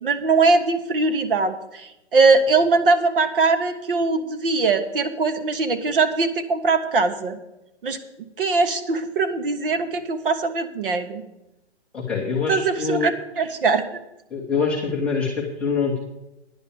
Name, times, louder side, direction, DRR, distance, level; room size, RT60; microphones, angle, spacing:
voice 1, 0.0-7.4 7.8-8.0 8.4-11.2 12.5-13.8, right 3 dB, 50° right, 10 dB, 1.2 m, -21 dB
voice 2, 11.9-13.2 14.3-16.0, left 5 dB, 5° left, -6 dB, 0.6 m, -24 dB
10.0 x 6.7 x 8.5 m, 0.90 s
hypercardioid pair, 165°, 34 cm